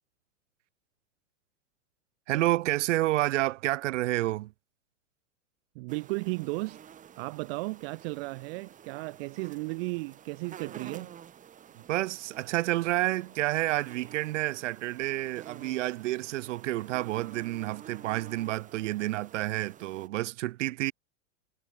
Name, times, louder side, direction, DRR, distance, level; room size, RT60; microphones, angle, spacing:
voice 1, 2.3-4.5 11.9-20.9, right 16 dB, 60° right, 2.3 m, -29 dB
voice 2, 5.7-6.8 7.2-11.1, right 26 dB, 45° right, 1.0 m, -35 dB
sound 1, 5.9-20.1, right 9 dB, 20° right, 1.8 m, -50 dB
hypercardioid pair, 135°, 40 cm